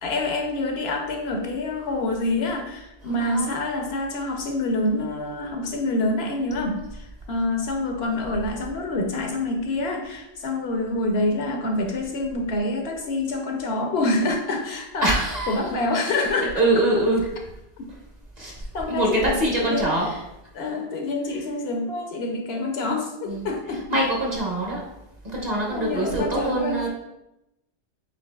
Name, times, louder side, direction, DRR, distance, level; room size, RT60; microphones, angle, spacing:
voice 1, 0.0-15.1 15.5-16.6 18.7-19.9 20.5-24.0 25.7-26.8, left 2 dB, 65° left, 2 dB, 0.8 m, -26 dB
voice 2, 3.0-3.5 15.0-15.7 16.5-17.2 18.4-20.1 23.3-23.5 23.9-24.8 25.2-26.9, right 1 dB, 40° right, -3 dB, 1.0 m, -24 dB
7.9 x 2.6 x 2.2 m, 0.89 s
omnidirectional pair, 1.2 m